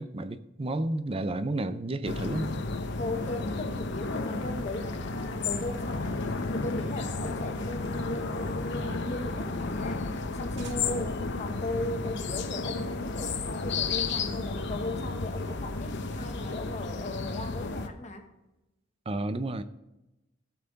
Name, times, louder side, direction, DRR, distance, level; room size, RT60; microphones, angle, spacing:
voice 1, 0.0-2.5 19.1-19.6, right 2 dB, 30° right, 0.5 m, -31 dB
sound 1, 2.0-17.9, left 3 dB, 60° left, 0.8 m, -32 dB
voice 2, 2.9-6.2 6.5-18.3, left 2 dB, 35° left, 1.2 m, -37 dB
Cheering / Applause / Crowd, 4.1-11.4, left 5 dB, 85° left, 1.2 m, -51 dB
sound 2, 6.3-9.1 9.4-9.5 9.8-9.9 10.2-10.3 10.6-12.3, right 2 dB, 60° right, 0.8 m, -48 dB
16.5 x 5.6 x 4.0 m
head